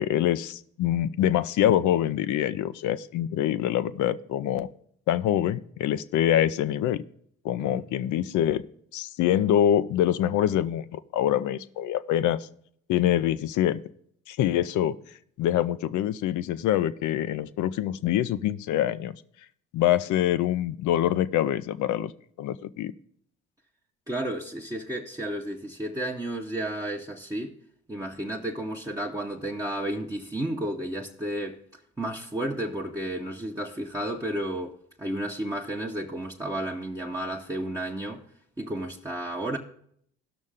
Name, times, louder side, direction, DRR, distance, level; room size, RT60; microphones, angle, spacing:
voice 1, 0.0-4.7 5.1-7.0 7.4-8.6 8.9-12.5 12.9-13.8 14.3-15.0 15.4-19.1 19.7-22.1 22.4-22.9, left 11 dB, 60° left, 0.6 m, -25 dB
voice 2, 24.1-27.6 27.9-31.6 32.0-38.2 38.6-39.6, right 1 dB, 10° right, 1.0 m, -32 dB
16.5 x 6.3 x 3.6 m
hypercardioid pair, 50°, 34 cm